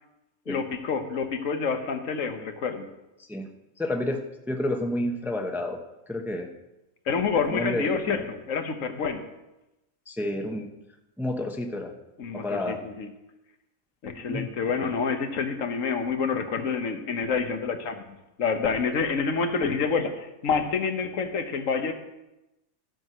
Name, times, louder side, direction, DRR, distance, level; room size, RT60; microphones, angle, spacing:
voice 1, 0.5-2.9 7.1-9.3 12.2-13.1 14.0-21.9, left 5 dB, 70° left, 7 dB, 1.4 m, -28 dB
voice 2, 3.8-4.2 4.5-5.8 6.1-6.5 7.5-8.3 10.1-10.7 11.2-11.9 12.3-12.8 14.3-14.5, left 1 dB, ahead, 3 dB, 0.7 m, -30 dB
13.0 x 6.1 x 6.1 m, 0.96 s
omnidirectional pair, 1.4 m